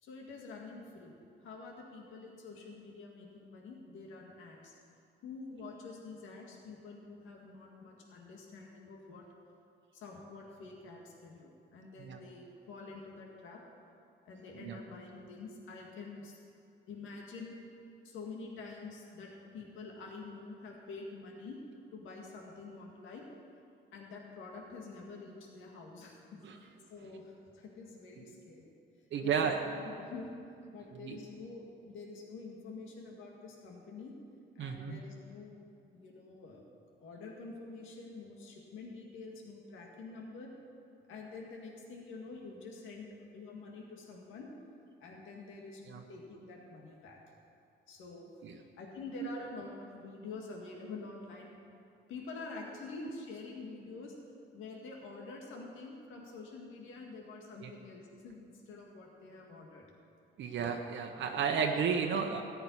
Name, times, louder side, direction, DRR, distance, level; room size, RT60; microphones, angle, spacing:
voice 1, 0.0-4.7 5.2-9.2 9.9-13.6 14.3-16.4 16.9-17.6 18.0-21.6 21.9-23.3 23.9-26.2 26.6-28.7 29.2-30.4 30.7-34.2 34.6-35.6 35.9-36.6 37.0-40.5 41.1-43.1 43.3-44.5 45.0-47.2 47.9-48.3 48.8-51.6 52.1-54.2 54.5-59.9, left 3 dB, 85° left, -1 dB, 1.9 m, -47 dB
voice 2, 29.1-29.5 30.9-31.2 34.6-35.0 45.9-46.0 48.4-48.5 49.2-49.3 57.6-57.7 60.4-62.4, right 6 dB, 70° right, 3 dB, 1.0 m, -33 dB
14.0 x 5.8 x 9.8 m, 2.6 s
cardioid pair, 90°, 20 cm